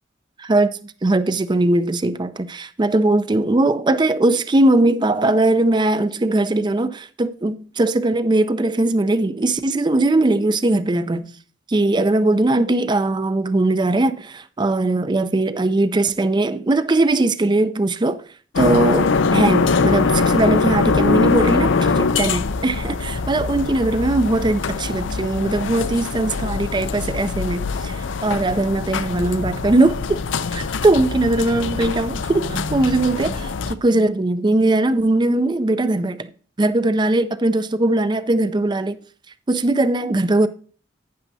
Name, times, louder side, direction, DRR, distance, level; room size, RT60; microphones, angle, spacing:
voice 1, 0.4-11.3 11.7-18.2 18.6-30.2 30.5-36.3 36.6-39.0 39.5-40.5, right 2 dB, 25° right, 0.4 m, -20 dB
sound 1, 18.6-33.7, left 4 dB, 80° left, 0.5 m, -22 dB
11.5 x 9.2 x 2.7 m
head